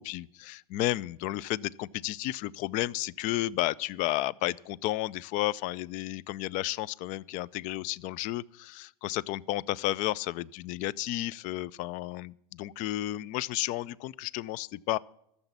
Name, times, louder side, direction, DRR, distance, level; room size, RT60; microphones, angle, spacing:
voice 1, 0.0-15.0, left 16 dB, 40° left, 0.4 m, -32 dB
13.0 x 7.1 x 8.0 m
hypercardioid pair, 115°, 20 cm